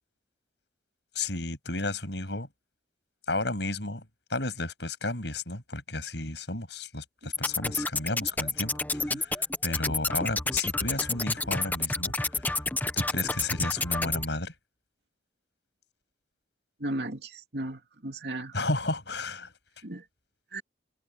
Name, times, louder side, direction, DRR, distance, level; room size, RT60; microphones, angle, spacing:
voice 1, 1.1-2.5 3.3-9.4 9.6-12.6 12.9-14.5 18.5-19.5, left 2 dB, 70° left, 7.3 m, -33 dB
sound 1, 7.3-14.2, left 3 dB, 10° left, 0.8 m, -30 dB
voice 2, 16.8-18.5 19.8-20.1 20.5-20.6, right 1 dB, 65° right, 2.5 m, -36 dB
head